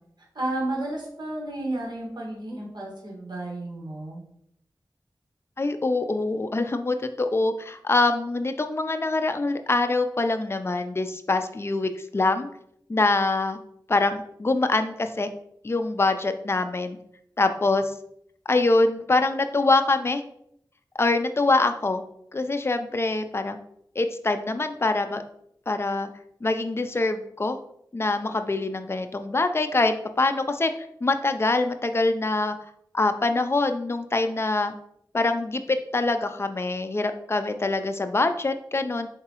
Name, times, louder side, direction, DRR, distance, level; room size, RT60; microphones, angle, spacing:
voice 1, 0.3-4.2, right 1 dB, 65° right, -3 dB, 1.5 m, -32 dB
voice 2, 5.6-12.5 12.9-13.6 13.9-15.3 15.6-17.0 17.4-17.9 18.5-20.2 21.0-22.0 22.3-23.6 24.0-25.2 25.7-26.1 26.4-27.6 27.9-30.7 31.0-32.6 32.9-34.7 35.1-39.1, left 2 dB, 30° left, 8 dB, 0.4 m, -24 dB
4.0 x 3.5 x 2.9 m, 0.72 s
wide cardioid pair, 55°, 8 cm